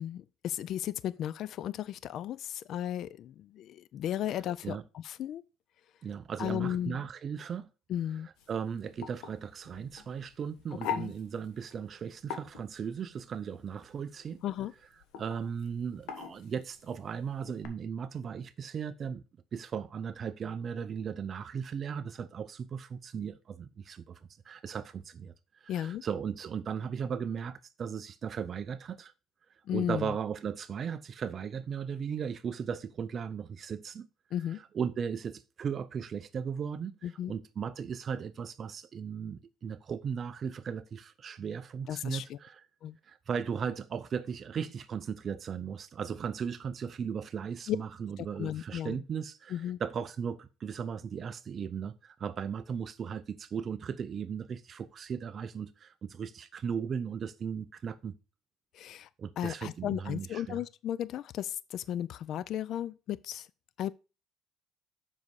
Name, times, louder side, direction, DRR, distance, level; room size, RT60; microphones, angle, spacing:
voice 1, 0.0-5.4 6.4-7.0 7.9-8.3 10.9-11.1 14.4-14.7 25.7-26.0 29.7-30.1 34.3-34.6 37.0-37.3 41.9-42.4 42.8-43.0 47.7-47.8 48.2-49.0 49.5-49.8 58.7-59.1 59.4-63.5 63.8-63.9, left 11 dB, 50° left, 0.3 m, -35 dB
voice 2, 6.0-7.7 8.5-14.4 15.2-19.2 19.5-24.2 24.5-25.3 25.6-29.1 29.7-34.1 34.7-42.6 43.1-58.2 59.2-60.6, right 7 dB, 35° right, 0.5 m, -37 dB
sound 1, 8.4-17.7, left 8 dB, 80° left, 1.3 m, -43 dB
7.5 x 5.4 x 4.7 m
cardioid pair, 155°, 0 cm